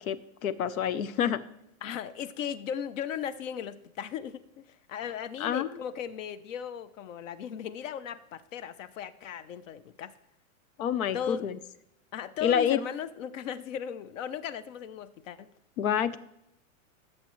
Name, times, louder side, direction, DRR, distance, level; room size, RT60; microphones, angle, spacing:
voice 1, 0.0-1.4 5.4-5.7 10.8-11.5 12.4-12.8 15.8-16.2, left 9 dB, 90° left, 16 dB, 0.9 m, -27 dB
voice 2, 1.8-10.2 11.1-11.6 12.1-15.5, left 8 dB, 65° left, 15 dB, 0.9 m, -37 dB
18.0 x 7.5 x 3.2 m, 0.82 s
supercardioid pair, 155°, 41 cm